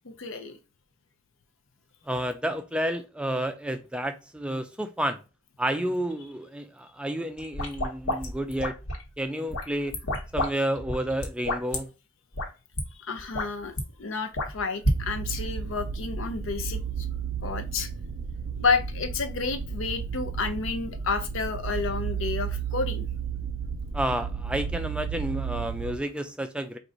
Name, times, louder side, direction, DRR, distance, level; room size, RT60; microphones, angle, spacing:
voice 1, 0.0-0.6 12.9-17.1 17.4-17.9 18.6-23.1, left 4 dB, 60° left, 0.6 m, -30 dB
voice 2, 2.1-5.2 5.6-8.8 9.2-10.0 10.3-11.9 23.9-26.8, right 1 dB, 5° right, 0.4 m, -30 dB
sound 1, 7.4-9.1 9.5-10.5 10.8-11.8 12.3-12.5 12.8-12.9 13.2-13.8 14.3-15.0, left 1 dB, 85° left, 1.3 m, -29 dB
sound 2, 14.8-26.0, right 6 dB, 65° right, 0.5 m, -33 dB
4.5 x 2.5 x 3.8 m
head